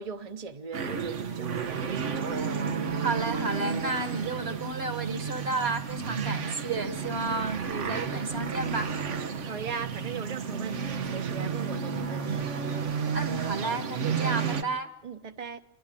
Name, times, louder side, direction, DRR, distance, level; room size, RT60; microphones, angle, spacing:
voice 1, 0.0-2.3 9.4-12.5 15.0-15.6, right 5 dB, 35° right, 0.9 m, -39 dB
sound 1, 0.7-14.6, right 6 dB, 90° right, 1.4 m, -32 dB
voice 2, 3.0-8.9 13.1-14.9, right 3 dB, 60° right, 1.9 m, -32 dB
28.0 x 11.0 x 8.5 m
omnidirectional pair, 1.2 m